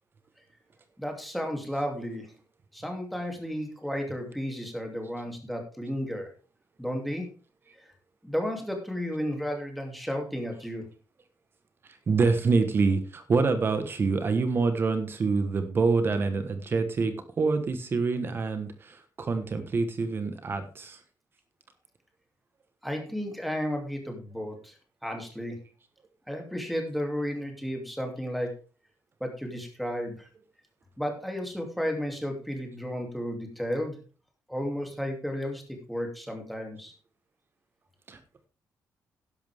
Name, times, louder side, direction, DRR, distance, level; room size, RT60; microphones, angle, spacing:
voice 1, 1.0-2.3 2.7-6.3 6.8-7.3 7.8-7.9 8.2-10.8 22.8-24.7 25.0-25.6 26.3-28.6 29.2-30.3 31.0-34.0 34.5-35.6 35.9-36.9, equal, ahead, 2 dB, 2.8 m, -33 dB
voice 2, 12.1-21.0 38.1-38.2, right 4 dB, 35° right, 9 dB, 1.3 m, -26 dB
12.0 x 11.0 x 3.6 m, 0.35 s
cardioid pair, 140°, 6 cm